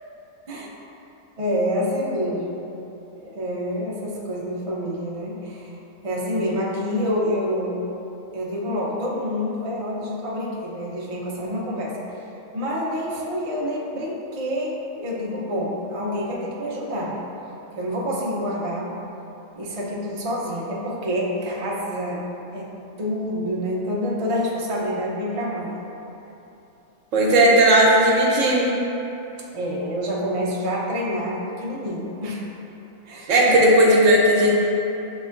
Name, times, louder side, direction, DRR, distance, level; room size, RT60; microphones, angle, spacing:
voice 1, 1.4-2.7 3.1-5.7 6.0-7.8 8.3-12.0 12.5-17.2 17.7-18.9 19.5-22.3 22.5-22.7 23.0-25.8 29.5-32.4 33.0-33.6, equal, 50° right, -4 dB, 0.4 m, -27 dB
voice 2, 27.1-28.7 33.3-34.6, right 1 dB, 70° right, -3 dB, 1.0 m, -16 dB
7.2 x 2.9 x 2.4 m, 3.0 s
omnidirectional pair, 1.4 m